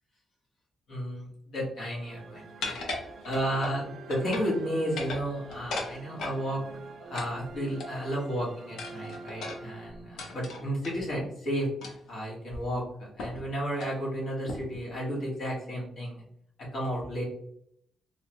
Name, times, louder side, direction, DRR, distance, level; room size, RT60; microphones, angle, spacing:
voice 1, 0.9-2.8 3.2-6.6 7.0-11.7 12.1-12.8 13.2-16.2 16.7-17.2, equal, 55° left, -5 dB, 1.5 m, -32 dB
sound 1, 2.0-10.4, right 4 dB, 55° right, 0.3 m, -46 dB
sound 2, 2.6-3.8 4.1-4.6 4.9-6.4 7.1-8.2 8.8-11.0 11.8-12.1 12.5-12.6 13.2-13.4 13.7-14.0 14.5-14.8, left 2 dB, 90° left, 0.6 m, -37 dB
3.5 x 2.2 x 3.0 m, 0.71 s
wide cardioid pair, 175°, 0 cm